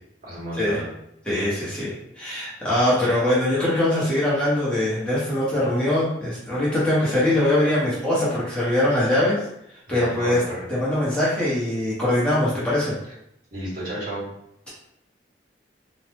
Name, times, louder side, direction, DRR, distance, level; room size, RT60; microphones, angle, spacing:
voice 1, 0.2-0.9 9.9-10.6 13.5-14.3, right 1 dB, 50° right, -8 dB, 1.5 m, -32 dB
voice 2, 1.2-9.4 9.9-10.4 10.7-12.9, left 1 dB, 5° left, -9 dB, 0.8 m, -22 dB
2.9 x 2.1 x 3.2 m, 0.79 s
head